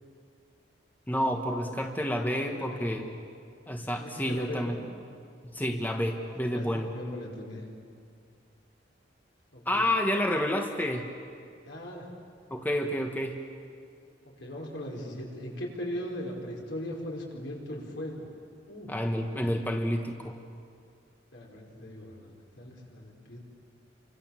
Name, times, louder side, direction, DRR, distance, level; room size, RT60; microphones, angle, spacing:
voice 1, 1.1-3.2 3.7-4.8 5.5-6.9 9.6-11.1 12.5-13.4 18.9-20.4, equal, 10° left, 3 dB, 1.4 m, -29 dB
voice 2, 2.5-2.9 4.0-4.8 6.1-6.7 6.9-7.6 9.5-9.9 11.6-12.1 14.2-18.3 18.7-18.9 21.3-23.4, left 1 dB, 70° left, -1 dB, 5.7 m, -39 dB
29.5 x 25.5 x 7.7 m, 2.4 s
head